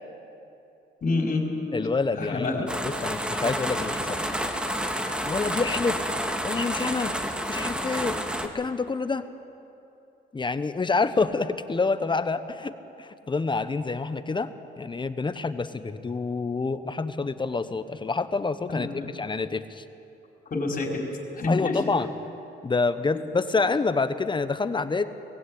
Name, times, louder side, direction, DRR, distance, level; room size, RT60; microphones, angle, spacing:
voice 1, 1.0-1.8 2.2-2.6 18.7-19.1 20.5-21.0 21.3-21.8, left 3 dB, 45° left, 0 dB, 4.5 m, -27 dB
voice 2, 1.7-4.3 5.2-6.0 6.4-7.1 7.5-8.2 8.5-9.2 10.3-14.5 14.8-19.8 21.5-22.1 22.6-25.1, left 4 dB, 25° left, 12 dB, 1.0 m, -27 dB
sound 1, 2.7-8.5, equal, 5° right, 1.7 m, -29 dB
20.0 x 16.0 x 8.7 m, 2.8 s
cardioid pair, 90°, 20 cm